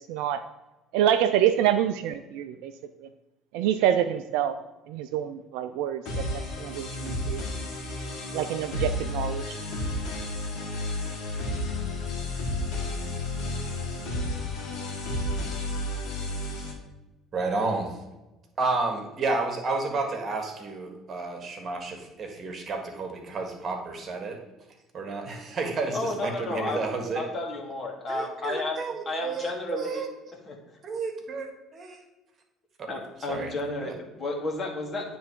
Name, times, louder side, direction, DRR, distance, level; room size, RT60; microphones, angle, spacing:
voice 1, 0.1-0.4 0.9-2.7 3.5-4.6 4.9-6.2 6.6-7.4 8.3-9.5, right 10 dB, 70° right, 10 dB, 0.3 m, -26 dB
sound 1, 6.1-16.7, left 1 dB, 70° left, 1.8 m, -32 dB
voice 2, 17.3-18.0 18.6-24.4 24.9-27.3 28.1-30.1 30.8-32.0 32.8-32.9 33.3-33.5 33.8-33.9, right 3 dB, 45° right, 3 dB, 1.6 m, -31 dB
voice 3, 25.9-26.9 27.1-30.0 30.5-30.6 32.9-35.2, left 2 dB, 40° left, 0 dB, 1.9 m, -32 dB
9.4 x 3.4 x 4.6 m, 1.0 s
hypercardioid pair, 60°, 0 cm